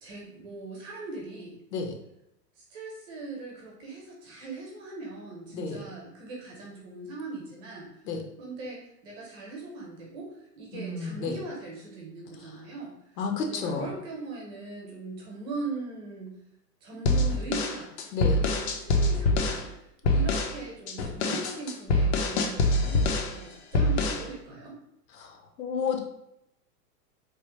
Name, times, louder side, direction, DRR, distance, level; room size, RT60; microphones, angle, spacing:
voice 1, 0.0-1.6 2.6-7.9 8.4-13.0 13.4-16.4 16.8-17.9 18.3-19.7 20.0-24.8, right 3 dB, 30° right, -1 dB, 0.8 m, -40 dB
voice 2, 10.7-11.4 13.2-13.9 18.1-18.4 25.2-26.0, left 4 dB, 80° left, 3 dB, 0.9 m, -31 dB
sound 1, 17.1-19.6 20.1-20.6 20.9-23.4 23.7-24.3, left 2 dB, 45° left, 0.5 m, -25 dB
3.2 x 2.0 x 3.0 m, 0.83 s
hypercardioid pair, 135°, 49 cm